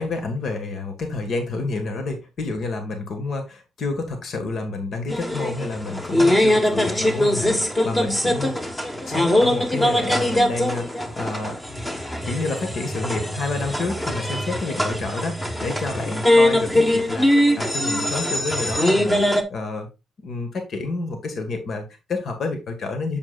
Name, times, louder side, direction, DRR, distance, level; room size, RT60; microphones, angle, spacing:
voice 1, 0.0-8.8 9.1-11.6 12.2-19.9 20.2-23.2, left 3 dB, 60° left, 5 dB, 1.7 m, -29 dB
sound 1, 5.1-19.4, left 1 dB, 15° left, 1.4 m, -22 dB
7.4 x 7.3 x 2.5 m, 0.26 s
cardioid pair, 90°, 0 cm